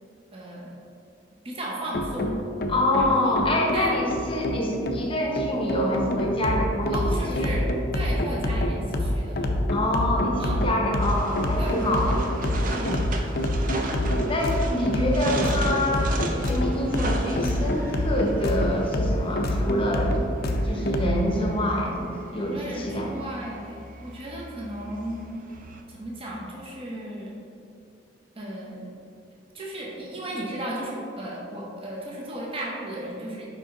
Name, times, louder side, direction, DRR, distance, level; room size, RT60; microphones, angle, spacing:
voice 1, 0.3-0.7 1.4-2.4 2.9-3.9 4.5-4.8 6.9-7.7 7.9-9.5 10.4-10.7 11.6-12.2 12.6-13.1 13.6-13.8 22.5-23.7 24.0-25.3 25.9-27.3 28.4-28.9 29.5-33.5, right 1 dB, 30° right, -4 dB, 0.9 m, -35 dB
sound 1, 1.9-21.2, left 1 dB, 55° left, 0.5 m, -26 dB
voice 2, 2.7-7.5 9.7-12.4 14.3-20.2 20.6-23.1, left 1 dB, 30° left, -1 dB, 0.8 m, -26 dB
sound 2, 11.0-25.8, right 2 dB, 45° right, 0.5 m, -37 dB
5.4 x 4.9 x 3.7 m, 2.5 s
head